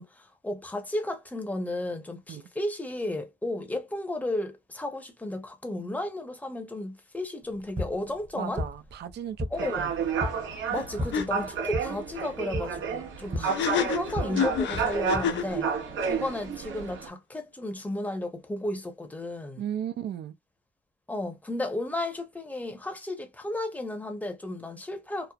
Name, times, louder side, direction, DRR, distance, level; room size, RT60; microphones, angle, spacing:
voice 1, 0.0-8.6 9.5-9.9 10.7-15.7 16.1-19.6 21.1-25.3, left 1 dB, 10° left, 0.8 m, -33 dB
sound 1, 7.4-15.2, left 1 dB, 25° right, 1.0 m, -36 dB
voice 2, 8.3-9.5 9.8-10.4 13.4-13.6 19.6-20.4, right 9 dB, 60° right, 0.5 m, -36 dB
sound 2, 9.5-17.1, right 6 dB, 75° right, 1.0 m, -31 dB
sound 3, 10.7-10.8 11.1-11.3 13.4-15.6, left 7 dB, 65° left, 0.5 m, -28 dB
3.0 x 2.0 x 2.3 m
cardioid pair, 90°, 20 cm